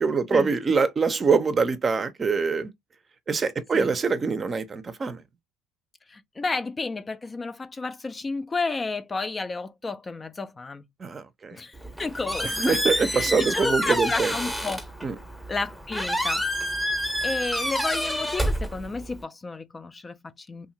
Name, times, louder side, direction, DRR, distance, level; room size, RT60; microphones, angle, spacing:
voice 1, 0.0-2.7 3.3-5.2 11.0-11.6 12.4-14.3 15.0-15.1, right 5 dB, 35° right, 0.6 m, -24 dB
voice 2, 6.1-10.8 11.5-14.8 15.5-16.4 17.2-20.7, left 3 dB, 25° left, 0.3 m, -32 dB
Squeak, 11.7-19.2, equal, ahead, 0.8 m, -28 dB
2.8 x 2.5 x 2.7 m
hypercardioid pair, 65°, 0 cm